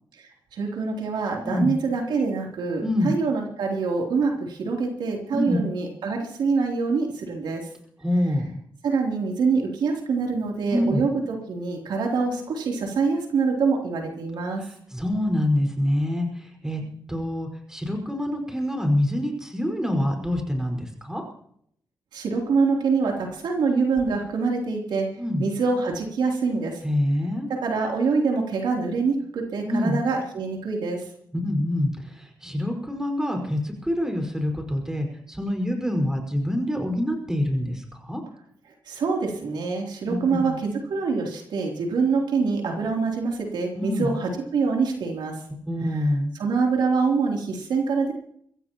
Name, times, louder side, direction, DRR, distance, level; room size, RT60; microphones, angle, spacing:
voice 1, 0.2-7.6 8.8-14.6 22.1-25.1 25.4-26.8 27.6-31.0 38.9-45.3 46.4-48.1, right 4 dB, 85° right, 0 dB, 3.3 m, -25 dB
voice 2, 1.4-1.7 2.8-3.2 5.3-5.7 8.0-8.6 10.7-11.0 14.6-21.2 25.2-25.5 26.8-27.5 29.6-30.0 31.3-38.2 40.1-40.6 43.7-44.2 45.7-46.3, left 1 dB, 5° right, 3 dB, 5.2 m, -26 dB
24.5 x 15.0 x 3.0 m, 0.67 s
cardioid pair, 85°, 7 cm